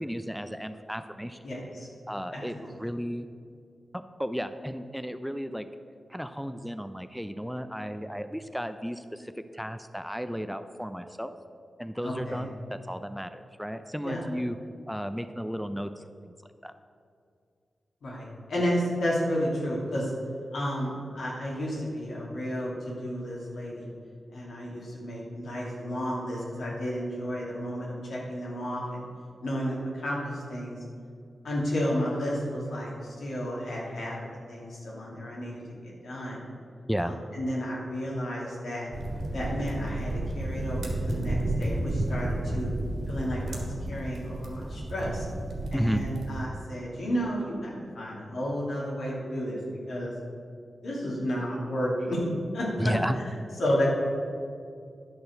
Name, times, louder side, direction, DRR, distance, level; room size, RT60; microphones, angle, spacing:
voice 1, 0.0-1.4 2.1-3.3 3.9-5.7 6.1-11.4 11.8-14.6 14.9-16.0 16.6-16.7 36.9-37.2 45.7-46.0 52.8-53.2, equal, ahead, 9 dB, 0.5 m, -33 dB
voice 2, 1.4-1.9 2.3-2.7 12.0-12.4 14.0-14.2 18.0-20.1 20.5-23.8 24.3-29.0 29.4-30.8 31.4-34.2 34.5-36.4 37.0-38.9 39.3-42.7 43.1-45.3 45.7-49.6 49.9-50.1 50.8-52.2 52.5-53.3 53.6-53.8, equal, 80° left, -4 dB, 2.6 m, -32 dB
sound 1, 38.9-46.5, right 1 dB, 75° right, 1.7 m, -32 dB
10.5 x 4.4 x 6.6 m, 2.3 s
cardioid pair, 50°, 0 cm